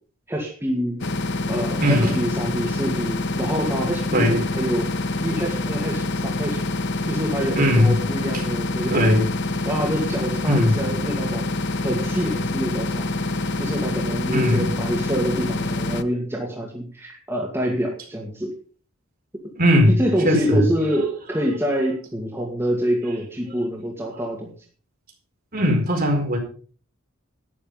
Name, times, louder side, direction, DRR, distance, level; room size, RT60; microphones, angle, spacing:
voice 1, 0.3-1.0 1.5-4.9 5.2-6.6 7.1-9.2 9.6-11.5 11.8-13.1 13.6-18.5 19.9-24.5, equal, 10° right, -1 dB, 2.2 m, -26 dB
sound 1, 1.0-16.0, left 2 dB, 55° left, 0.9 m, -26 dB
voice 2, 1.8-2.1 4.1-4.4 7.5-8.0 8.9-9.3 10.5-10.8 14.3-14.7 19.6-20.7 25.5-26.4, equal, 40° right, 2 dB, 4.5 m, -19 dB
12.5 x 10.0 x 5.5 m, 0.41 s
head